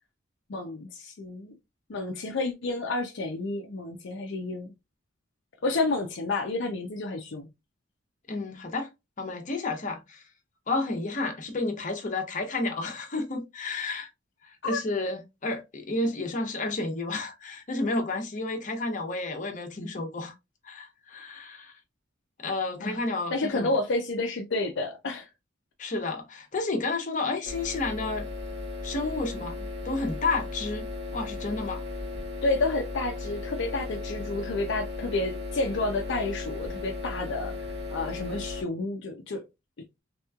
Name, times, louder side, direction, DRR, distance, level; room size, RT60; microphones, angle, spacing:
voice 1, 0.5-1.5 1.9-4.7 5.6-7.5 14.6-14.8 22.8-23.0 23.3-25.3 32.4-39.4, left 2 dB, 60° left, 0.5 m, -30 dB
voice 2, 8.3-8.9 9.2-10.2 10.7-14.1 14.4-20.3 20.6-21.7 22.4-23.8 25.8-28.3 28.8-31.8, left 2 dB, 40° left, 0.8 m, -31 dB
sound 1, 27.4-38.6, left 3 dB, 60° right, 1.0 m, -36 dB
3.3 x 3.0 x 2.3 m
head